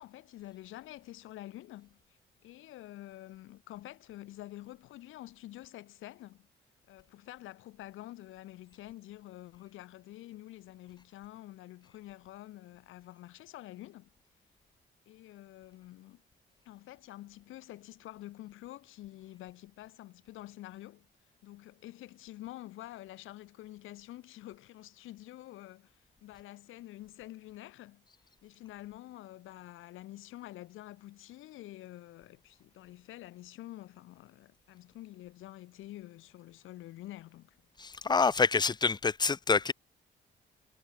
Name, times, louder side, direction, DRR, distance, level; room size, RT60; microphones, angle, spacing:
voice 1, 0.0-2.2 2.4-6.5 6.9-14.1 15.1-16.2 16.6-21.1 21.4-28.0 28.4-37.6, left 15 dB, 90° left, 6.6 m, -48 dB
voice 2, 38.0-39.7, left 4 dB, 20° left, 0.6 m, -26 dB
cardioid pair, 90°, 20 cm